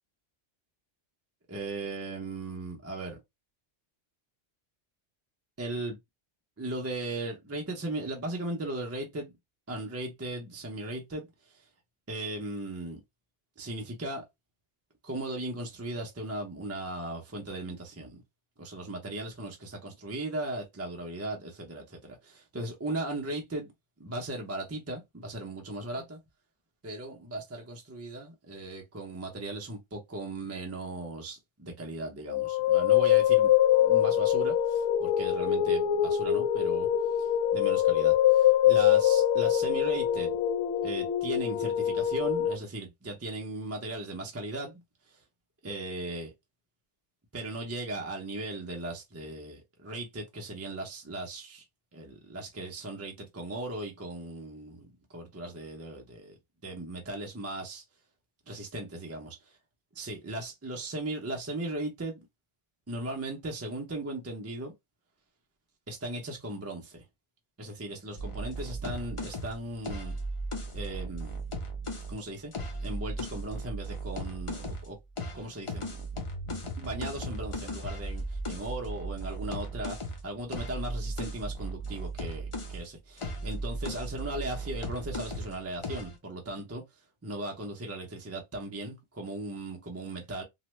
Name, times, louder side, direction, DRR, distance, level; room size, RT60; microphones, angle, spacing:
voice 1, 1.5-3.2 5.6-6.0 6.6-9.3 9.7-11.6 12.1-13.0 13.6-14.2 15.0-18.2 18.6-23.7 24.0-26.2 26.8-33.5 33.8-36.9 37.2-40.4 40.8-44.8 45.6-46.3 47.3-51.6 51.9-56.4 56.6-57.8 58.5-59.4 59.9-62.3 62.9-64.7 65.9-67.0 67.6-70.1 70.7-71.4 72.1-72.5 72.8-75.0 75.3-76.0 76.8-86.8 87.2-90.4, right 2 dB, 25° right, 0.3 m, -37 dB
sound 1, 32.3-42.5, left 11 dB, 90° left, 0.9 m, -24 dB
sound 2, 68.2-72.1 72.5-74.9 75.2-82.9 83.2-85.6 85.8-86.2, right 1 dB, 35° left, 0.7 m, -36 dB
3.2 x 2.1 x 3.0 m
omnidirectional pair, 1.2 m